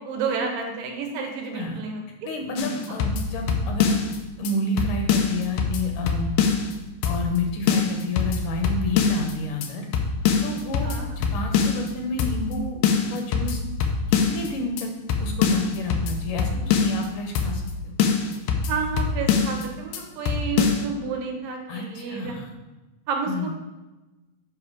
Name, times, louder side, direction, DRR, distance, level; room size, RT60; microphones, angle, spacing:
voice 1, 0.0-2.0 10.8-11.2 18.7-22.4 23.1-23.5, right 5 dB, 75° right, 2 dB, 2.7 m, -30 dB
voice 2, 1.2-1.8 2.2-4.0 4.4-6.4 7.0-9.9 10.4-12.8 13.1-13.6 14.1-14.9 15.2-17.9 21.7-22.5 23.3-23.5, left 2 dB, 70° left, 2 dB, 2.4 m, -30 dB
sound 1, 2.6-4.2 4.5-4.6 4.8-6.7 7.0-7.4 7.7-9.3 9.6-9.7 9.9-11.9 12.2-12.6 12.8-14.5 14.8-14.9 15.1-17.1 17.4-17.7 18.0-19.7 19.9-20.0 20.3-20.8, left 6 dB, 85° left, 2.6 m, -24 dB
7.7 x 5.7 x 4.8 m, 1.1 s
omnidirectional pair, 4.1 m